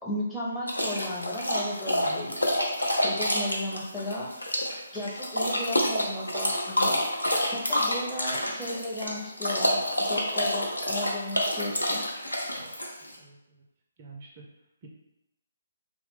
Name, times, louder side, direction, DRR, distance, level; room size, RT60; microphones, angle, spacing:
voice 1, 0.0-2.4 3.0-4.3 4.9-7.1 7.5-12.0, left 1 dB, 5° left, -6 dB, 0.6 m, -35 dB
sound 1, 0.7-13.2, left 1 dB, 90° left, 0.6 m, -28 dB
voice 2, 13.0-13.6 14.0-14.5 14.8-14.9, right 4 dB, 35° right, -1 dB, 0.4 m, -48 dB
2.8 x 2.0 x 3.3 m, 0.86 s
figure-of-eight pair, 140°, 0 cm